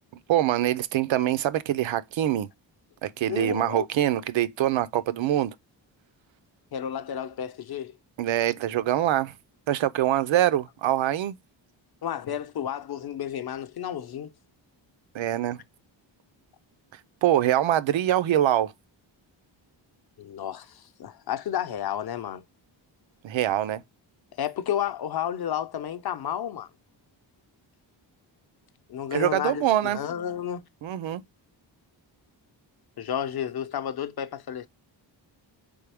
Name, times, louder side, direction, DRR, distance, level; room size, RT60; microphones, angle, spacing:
voice 1, 0.3-2.5 3.0-5.5 8.2-9.3 9.7-11.3 15.1-15.6 17.2-18.7 23.2-23.8 29.1-30.0 30.8-31.2, right 12 dB, 80° right, 0.6 m, -24 dB
voice 2, 3.3-3.9 6.7-7.9 12.0-14.3 20.2-22.4 24.4-26.7 28.9-30.6 33.0-34.7, left 9 dB, 55° left, 0.7 m, -31 dB
4.1 x 3.5 x 3.4 m
cardioid pair, 80°, 46 cm